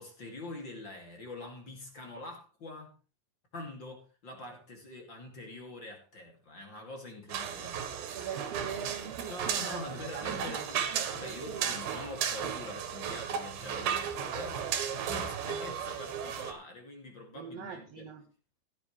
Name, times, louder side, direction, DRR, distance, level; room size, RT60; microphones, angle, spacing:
voice 1, 0.0-2.9 3.5-7.8 9.3-18.0, left 2 dB, 35° left, 3.0 m, -44 dB
sound 1, 7.3-16.5, right 8 dB, 90° right, 3.3 m, -35 dB
voice 2, 8.1-10.6 10.8-11.7 17.3-18.3, right 7 dB, 70° right, 1.5 m, -42 dB
15.5 x 11.5 x 3.3 m
omnidirectional pair, 4.2 m